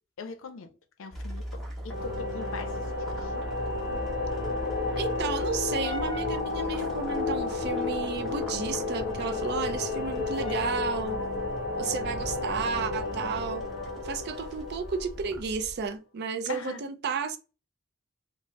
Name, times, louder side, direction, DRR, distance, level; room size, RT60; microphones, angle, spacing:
voice 1, 0.2-0.7 1.0-3.3 9.7-9.8 16.5-16.8, left 4 dB, 80° left, 0.5 m, -41 dB
sound 1, 1.1-15.4, equal, ahead, 0.7 m, -42 dB
sound 2, 1.9-15.5, left 3 dB, 50° left, 0.8 m, -32 dB
sound 3, 2.7-15.9, left 3 dB, 25° left, 0.4 m, -41 dB
voice 2, 5.0-11.2 11.8-13.6 14.0-17.4, right 5 dB, 55° right, 0.4 m, -32 dB
2.7 x 2.0 x 3.1 m
head